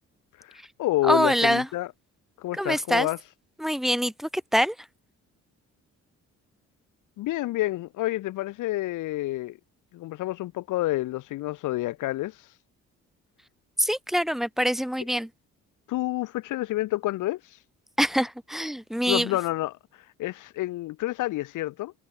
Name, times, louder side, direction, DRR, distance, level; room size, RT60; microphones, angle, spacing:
voice 1, 0.4-1.9 2.4-3.2 7.2-9.6 9.9-12.6 15.9-17.6 19.1-21.9, left 16 dB, 85° left, 1.3 m, -29 dB
voice 2, 1.0-1.7 2.5-3.1 3.6-4.8 13.8-15.3 18.0-19.3, equal, ahead, 0.7 m, -24 dB
cardioid pair, 90°, 30 cm